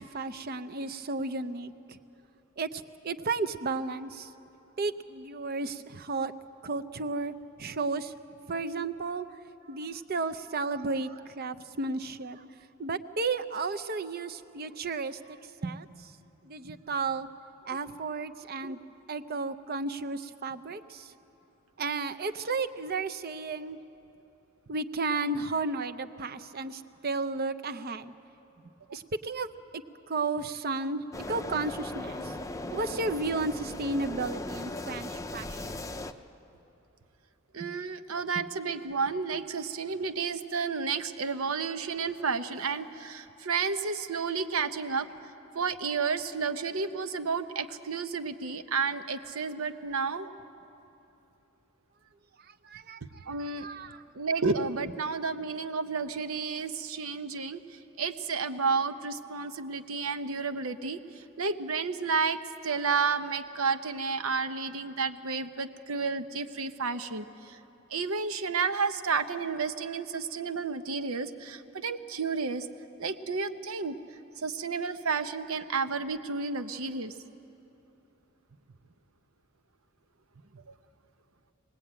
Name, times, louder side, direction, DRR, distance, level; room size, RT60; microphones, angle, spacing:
voice 1, 0.0-2.0 2.6-4.3 4.8-6.3 6.6-7.3 7.6-8.1 8.5-9.3 9.7-12.4 12.8-16.1 16.4-17.3 17.7-18.8 19.1-21.1 21.8-23.8 24.7-28.1 28.9-29.5 30.1-31.0 31.3-32.3 32.7-35.8 37.6-37.7 52.6-53.3 53.6-54.0, right 3 dB, 45° right, 10 dB, 0.7 m, -33 dB
sound 1, 31.1-36.1, left 2 dB, 15° left, 0.5 m, -38 dB
voice 2, 37.5-45.1 45.5-50.3 53.0-53.7 54.1-67.6 67.9-72.7 73.0-74.0 74.4-77.1 80.5-80.7, right 5 dB, 85° right, 9 dB, 0.9 m, -31 dB
22.0 x 18.5 x 8.8 m, 2.9 s
head